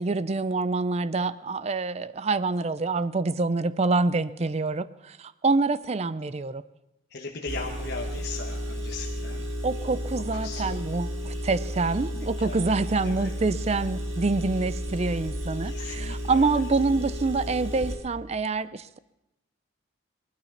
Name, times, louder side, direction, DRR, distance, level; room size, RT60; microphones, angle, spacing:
voice 1, 0.0-6.6 9.6-19.0, right 3 dB, 35° right, 16 dB, 0.4 m, -26 dB
voice 2, 7.1-9.5 10.1-10.8 12.1-12.6 13.0-13.3 15.6-16.5, left 3 dB, 55° left, 0 dB, 1.2 m, -38 dB
Engine, 7.5-18.0, equal, 75° right, 2.6 m, -33 dB
19.0 x 12.0 x 5.8 m, 0.93 s
head